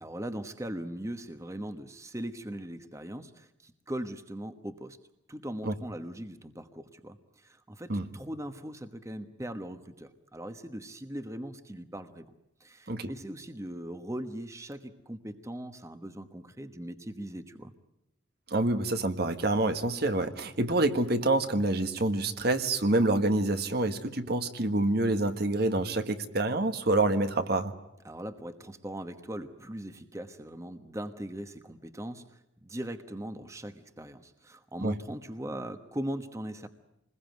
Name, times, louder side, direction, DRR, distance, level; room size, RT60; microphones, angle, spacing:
voice 1, 0.0-5.0 5.3-12.3 12.6-17.7 28.0-36.7, right 1 dB, 15° right, 9 dB, 1.2 m, -40 dB
voice 2, 18.5-27.7 34.8-34.9, right 2 dB, 60° right, 8 dB, 1.5 m, -27 dB
27.0 x 21.0 x 9.3 m, 0.88 s
head